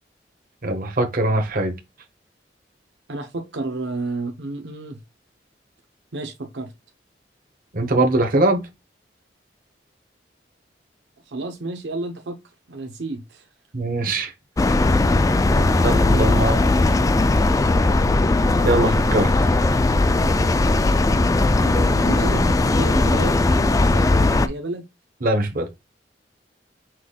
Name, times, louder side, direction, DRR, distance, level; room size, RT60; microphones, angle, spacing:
voice 1, 0.6-1.7 7.7-8.6 13.7-14.3 15.8-16.6 18.6-19.3 25.2-25.7, right 2 dB, 55° right, 1.1 m, -21 dB
voice 2, 3.1-5.0 6.1-6.7 11.2-12.4 12.7-13.5 15.5-15.8 16.1-16.4 21.6-24.9, right 2 dB, 80° right, 0.8 m, -31 dB
sound 1, 14.6-24.5, left 2 dB, 20° left, 0.3 m, -18 dB
5.9 x 3.3 x 2.3 m
head